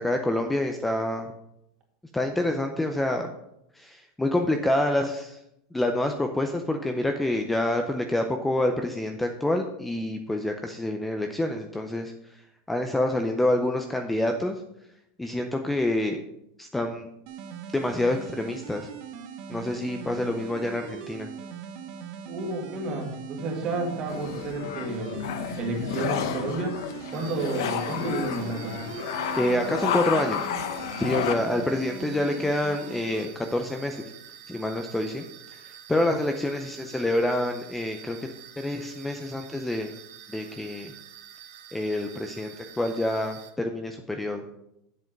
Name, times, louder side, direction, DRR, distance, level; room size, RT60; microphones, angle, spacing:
voice 1, 0.0-1.3 2.1-3.3 3.7-5.4 5.7-12.4 12.7-14.6 15.2-16.2 16.6-17.1 17.7-18.9 19.5-21.3 29.4-30.5 31.0-34.1 34.5-35.2 35.9-38.2 38.6-39.9 40.3-40.9 41.7-44.4, left 1 dB, 5° left, 5 dB, 0.5 m, -27 dB
sound 1, 17.3-33.3, right 7 dB, 50° right, 1.1 m, -40 dB
voice 2, 22.3-25.2 25.6-26.8 27.1-28.9, right 2 dB, 30° right, 2 dB, 2.0 m, -31 dB
sound 2, 24.1-31.4, left 8 dB, 70° left, 0.9 m, -31 dB
sound 3, 27.1-43.5, right 10 dB, 75° right, 1.3 m, -48 dB
8.1 x 7.6 x 5.2 m, 0.81 s
supercardioid pair, 160°, 2 cm